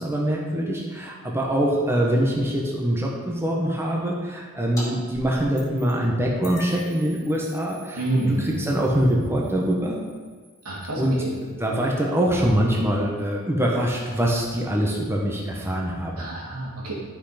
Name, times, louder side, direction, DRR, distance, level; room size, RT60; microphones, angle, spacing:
voice 1, 0.0-10.0 11.0-16.1, right 1 dB, 10° right, -2 dB, 1.2 m, -24 dB
sound 1, 4.8-4.9 5.1-6.0 6.4-11.5, left 1 dB, 15° left, 2.9 m, -44 dB
voice 2, 8.0-8.6 10.6-11.3 16.2-16.9, right 2 dB, 90° right, -4 dB, 2.8 m, -28 dB
11.5 x 5.9 x 5.1 m, 1.5 s
head